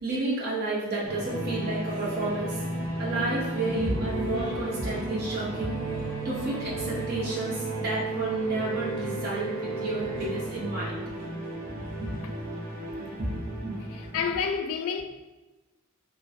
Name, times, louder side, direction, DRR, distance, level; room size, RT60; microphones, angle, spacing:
voice 1, 0.0-11.0 11.7-12.2 13.2-13.8 14.1-14.2, right 2 dB, 50° right, 0.9 m, -31 dB
sound 1, 1.0-14.3, right 2 dB, 80° right, 0.7 m, -34 dB
sound 2, 4.0-9.0, left 1 dB, 20° left, 0.9 m, -49 dB
voice 2, 13.9-15.0, left 6 dB, 75° left, 0.3 m, -29 dB
3.0 x 2.2 x 2.5 m
head